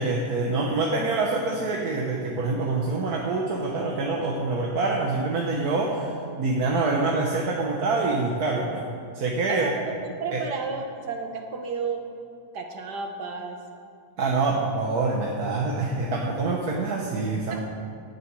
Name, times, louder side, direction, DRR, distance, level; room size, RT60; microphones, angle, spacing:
voice 1, 0.0-8.9 9.1-9.7 10.3-10.4 14.2-17.6, right 3 dB, 65° right, -1 dB, 1.7 m, -26 dB
voice 2, 10.0-12.0 12.5-13.6 17.5-17.6, right 4 dB, 90° right, 3 dB, 2.1 m, -32 dB
17.5 x 11.5 x 4.7 m, 2.3 s
omnidirectional pair, 1.7 m